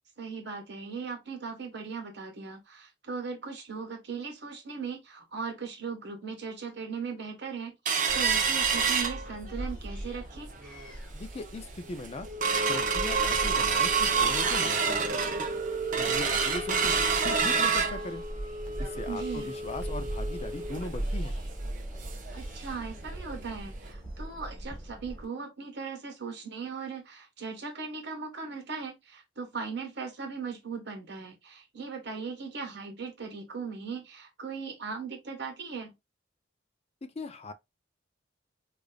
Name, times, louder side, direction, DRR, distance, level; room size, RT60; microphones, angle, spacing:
voice 1, 0.2-10.5 19.1-19.5 22.3-35.9, right 5 dB, 65° right, 1.4 m, -38 dB
sound 1, 7.9-9.7 10.1-10.2 10.6-10.9 11.4-11.5 11.8-22.4 22.7-22.8 23.2-23.3 23.9-24.0, right 5 dB, 45° right, 0.7 m, -28 dB
sound 2, 8.1-25.2, right 1 dB, 5° left, 1.2 m, -40 dB
voice 2, 11.1-12.3 12.7-15.2 16.0-17.0 17.2-18.2 18.8-21.3 37.2-37.5, left 2 dB, 35° left, 0.4 m, -39 dB
4.9 x 2.5 x 2.3 m
head